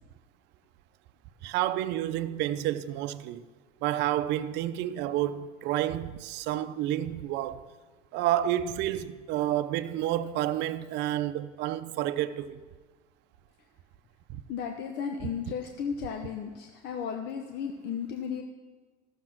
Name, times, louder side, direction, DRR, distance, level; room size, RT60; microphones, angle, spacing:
voice 1, 1.4-3.4 3.8-7.7 8.1-12.6 14.3-14.4, right 13 dB, 65° right, 0.6 m, -30 dB
voice 2, 14.5-18.4, left 7 dB, 60° left, 1.0 m, -34 dB
13.5 x 6.9 x 6.0 m
supercardioid pair, 100°, 20 cm